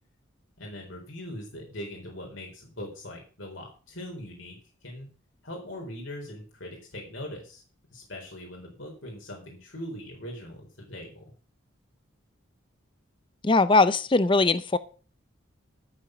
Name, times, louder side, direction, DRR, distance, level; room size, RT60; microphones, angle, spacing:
voice 1, 0.6-5.1 5.4-7.6 7.9-11.2, left 1 dB, 70° left, 1 dB, 4.2 m, -41 dB
voice 2, 13.4-14.8, left 3 dB, 25° left, 14 dB, 0.5 m, -20 dB
13.5 x 7.3 x 6.3 m, 0.38 s
head